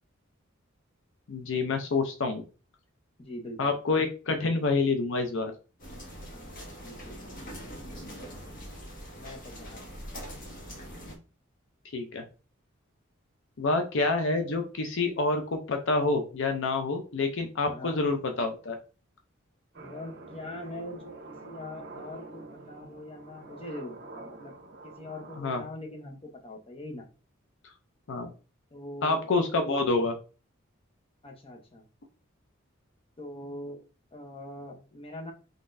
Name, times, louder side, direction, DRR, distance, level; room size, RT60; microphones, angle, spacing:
voice 1, 1.3-2.4 3.6-5.5 11.9-12.2 13.6-18.8 25.4-25.6 28.1-28.3 29.0-30.1, left 3 dB, 65° left, 6 dB, 0.6 m, -27 dB
voice 2, 3.2-3.8 6.3-7.5 9.2-9.9 17.6-18.0 19.8-24.5 24.8-27.1 28.7-29.3 31.2-31.8 33.2-33.8 34.1-35.3, left 1 dB, 30° left, 2 dB, 0.8 m, -43 dB
sound 1, 5.8-11.2, equal, 45° left, 1.2 m, -43 dB
sound 2, 19.7-25.4, right 2 dB, 55° right, 1.0 m, -46 dB
3.8 x 3.6 x 2.6 m, 0.34 s
head